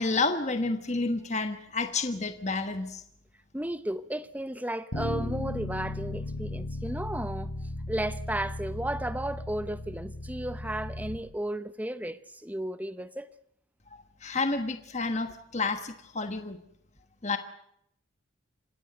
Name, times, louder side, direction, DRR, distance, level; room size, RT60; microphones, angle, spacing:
voice 1, 0.0-3.0 13.9-16.6 17.2-17.4, left 3 dB, 35° left, 1.3 m, -30 dB
voice 2, 3.5-7.5 7.9-13.3, right 1 dB, 10° right, 0.8 m, -34 dB
Bass guitar, 4.9-11.2, left 1 dB, 75° left, 5.7 m, -36 dB
27.5 x 16.5 x 7.9 m
head